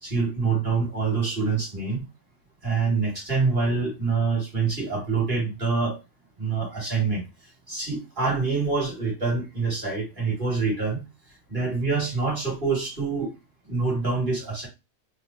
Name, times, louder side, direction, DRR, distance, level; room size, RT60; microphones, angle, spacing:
voice 1, 0.0-2.0 2.6-6.0 6.4-7.2 7.7-11.0 11.5-13.3 13.7-14.7, right 4 dB, 30° right, -3 dB, 2.1 m, -26 dB
3.5 x 2.4 x 4.0 m, 0.25 s
omnidirectional pair, 1.8 m